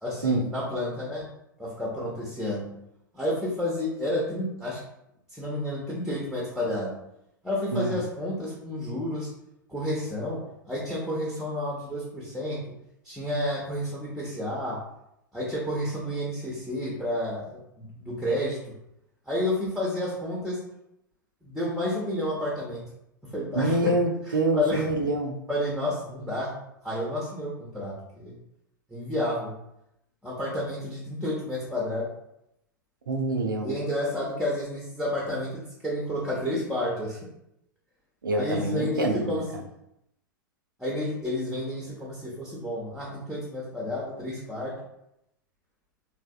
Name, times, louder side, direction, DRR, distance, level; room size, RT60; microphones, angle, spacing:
voice 1, 0.0-1.3 1.6-2.7 3.1-4.8 5.3-6.9 7.4-9.3 9.7-10.4 10.7-12.6 13.0-14.8 15.3-18.6 19.3-20.6 21.4-22.8 23.3-23.9 24.3-24.8 25.5-26.5 26.8-28.4 28.9-29.5 30.2-32.1 33.6-37.2 38.4-39.4 40.8-44.7, left 1 dB, ahead, -5 dB, 0.7 m, -30 dB
voice 2, 23.5-25.4 33.1-33.7 38.2-39.4, right 2 dB, 75° right, 3 dB, 0.4 m, -26 dB
3.4 x 2.6 x 2.3 m, 0.81 s
figure-of-eight pair, 95°, 11 cm